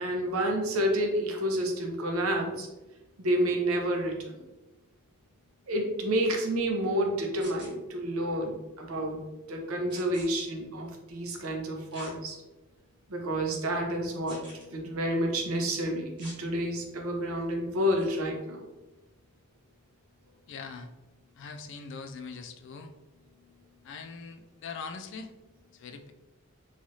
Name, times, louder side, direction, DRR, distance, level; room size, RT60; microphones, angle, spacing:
voice 1, 0.0-2.7 3.2-4.4 5.7-12.4 13.1-14.4 14.7-18.6, right 1 dB, 80° right, 1 dB, 0.6 m, -29 dB
sound 1, 7.4-7.7 9.9-10.3 11.9-12.1 12.7-12.8 14.3-14.6 16.2-16.4 18.0-18.2, right 1 dB, 25° right, 1.0 m, -46 dB
voice 2, 20.5-20.9 21.4-22.9 23.8-25.3 25.7-26.1, left 5 dB, 55° left, 7 dB, 0.3 m, -42 dB
3.1 x 2.4 x 2.7 m, 1.0 s
head